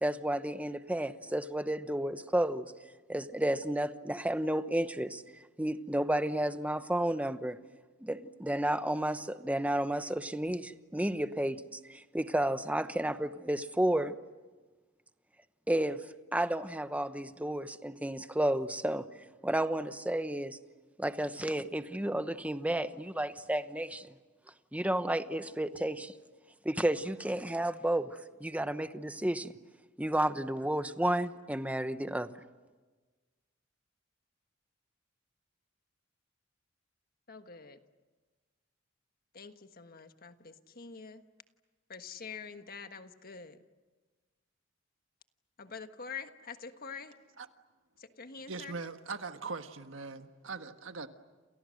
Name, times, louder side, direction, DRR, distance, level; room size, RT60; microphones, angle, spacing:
voice 1, 0.0-2.7 3.1-5.2 5.6-7.6 8.0-14.1 15.7-19.1 19.4-20.6 21.0-24.2 24.7-26.1 26.6-29.6 30.0-32.3, right 1 dB, 5° right, 1.0 m, -32 dB
voice 2, 37.3-37.8 39.3-41.2 41.9-43.6 45.6-47.1 48.0-48.7, left 5 dB, 50° left, 1.4 m, -46 dB
voice 3, 48.5-51.1, right 4 dB, 75° right, 1.5 m, -41 dB
29.0 x 28.5 x 6.5 m
head